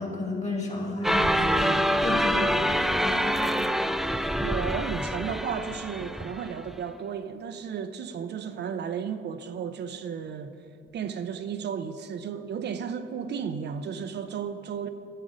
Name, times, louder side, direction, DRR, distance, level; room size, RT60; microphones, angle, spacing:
voice 1, 0.0-1.7 2.0-3.4, left 2 dB, 35° left, 2.6 m, -32 dB
sound 1, 1.0-6.8, equal, ahead, 0.3 m, -26 dB
voice 2, 2.4-2.8 4.4-10.6 10.9-14.9, right 7 dB, 60° right, 0.6 m, -34 dB
12.0 x 7.4 x 5.1 m
cardioid pair, 90°, 20 cm